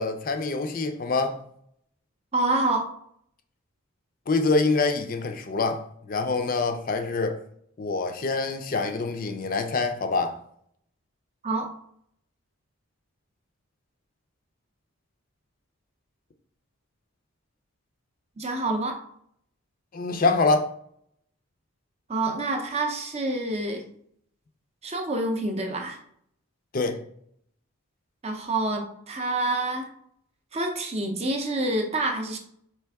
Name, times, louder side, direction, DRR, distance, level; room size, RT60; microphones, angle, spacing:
voice 1, 0.0-1.4 4.3-7.4 7.8-10.4 19.9-20.7 26.7-27.0, left 3 dB, 40° left, 0.4 m, -25 dB
voice 2, 2.3-2.9 11.4-11.7 18.4-19.0 22.1-23.9 24.8-26.0 28.2-29.9 30.5-32.4, right 2 dB, 30° right, 0.5 m, -27 dB
4.5 x 3.3 x 3.4 m
head